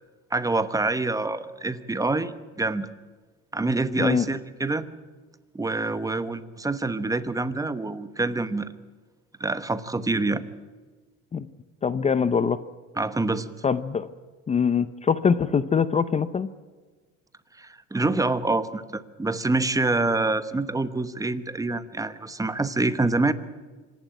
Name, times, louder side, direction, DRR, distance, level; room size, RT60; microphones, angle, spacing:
voice 1, 0.3-2.9 3.5-4.9 5.5-8.7 9.4-10.4 13.0-13.5 17.6-23.3, right 2 dB, 10° right, 12 dB, 1.0 m, -26 dB
voice 2, 11.8-12.6 13.6-14.1 14.5-16.5, left 6 dB, 25° left, 14 dB, 0.6 m, -23 dB
26.0 x 11.5 x 9.4 m, 1.4 s
cardioid pair, 125°, 29 cm